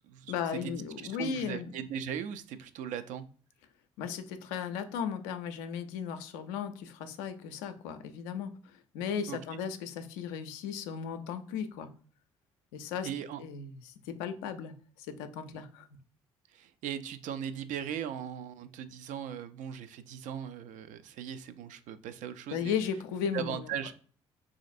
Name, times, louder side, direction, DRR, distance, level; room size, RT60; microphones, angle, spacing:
voice 1, 0.3-1.9 4.0-11.9 12.7-13.1 13.4-15.9 22.5-23.9, left 7 dB, 70° left, 8 dB, 0.4 m, -36 dB
voice 2, 1.2-3.3 9.3-9.4 13.0-13.4 15.5-15.6 16.5-22.8 23.3-23.9, right 9 dB, 55° right, 11 dB, 0.4 m, -38 dB
3.1 x 2.5 x 2.5 m, 0.43 s
figure-of-eight pair, 45°, 15 cm